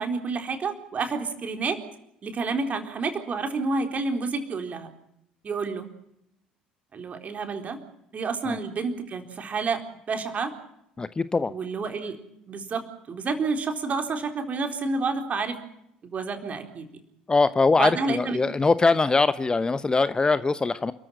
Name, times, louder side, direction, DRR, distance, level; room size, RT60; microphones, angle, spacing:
voice 1, 0.0-1.8 2.2-4.9 5.4-5.9 6.9-7.8 8.1-9.8 10.1-10.5 11.5-12.2 12.5-15.6 16.1-16.8 17.8-18.4, right 4 dB, 35° right, 5 dB, 4.0 m, -29 dB
voice 2, 11.0-11.5 17.3-20.9, left 3 dB, 20° left, 15 dB, 0.9 m, -22 dB
28.5 x 14.0 x 9.1 m, 0.78 s
figure-of-eight pair, 55°, 4 cm